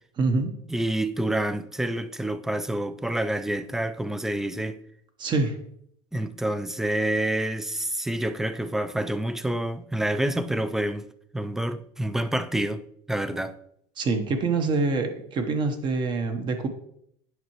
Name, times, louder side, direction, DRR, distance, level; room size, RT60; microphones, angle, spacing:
voice 1, 0.2-0.5 5.2-5.6 14.0-16.7, right 3 dB, 35° right, 0.9 m, -25 dB
voice 2, 0.7-4.8 6.1-11.1 11.3-13.6, right 1 dB, 5° right, 0.3 m, -28 dB
9.2 x 5.6 x 3.0 m
cardioid pair, 140°, 13 cm